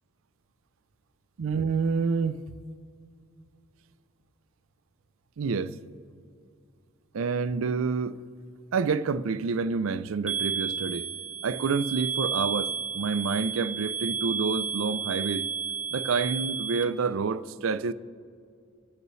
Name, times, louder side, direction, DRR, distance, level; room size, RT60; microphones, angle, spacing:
voice 1, 1.4-2.4 5.4-5.8 7.1-8.2 8.7-11.1 11.4-15.5 15.9-17.9, right 5 dB, 70° right, 0.5 m, -28 dB
sound 1, 10.3-16.8, right 6 dB, 5° right, 0.7 m, -32 dB
21.5 x 8.0 x 3.2 m
head